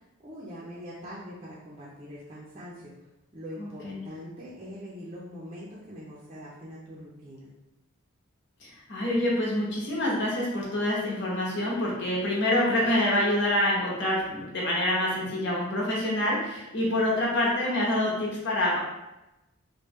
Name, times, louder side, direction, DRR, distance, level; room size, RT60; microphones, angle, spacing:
voice 1, 0.2-2.9 3.3-7.5, equal, 30° right, -7 dB, 0.5 m, -43 dB
voice 2, 3.6-4.0 8.6-18.8, left 1 dB, 55° left, -4 dB, 0.9 m, -26 dB
3.1 x 2.2 x 3.4 m, 0.98 s
head